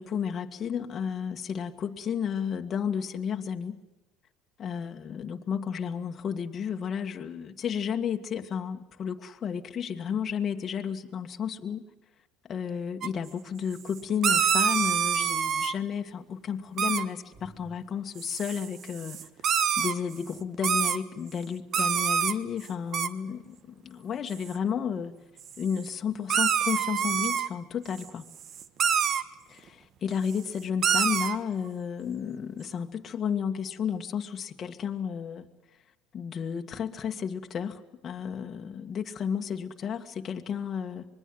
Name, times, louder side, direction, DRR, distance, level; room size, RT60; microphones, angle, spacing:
voice 1, 0.0-3.8 4.6-11.8 12.5-19.2 19.8-25.1 25.6-28.3 29.5-35.5 36.1-41.1, left 7 dB, 40° left, 3 dB, 1.8 m, -32 dB
sound 1, 13.0-13.1 14.0-15.7 16.8-17.0 18.2-19.9 20.5-21.0 21.7-22.3 22.6-22.7 22.9-23.1 24.3-24.5 25.5-25.6 26.3-27.5 27.9-28.0 28.4-29.2 30.3-30.4 30.8-31.4, right 8 dB, 45° right, 1.4 m, -26 dB
sound 2, 17.3-17.8, right 1 dB, 25° right, 3.4 m, -51 dB
25.5 x 21.5 x 7.8 m, 0.99 s
supercardioid pair, 110°, 0 cm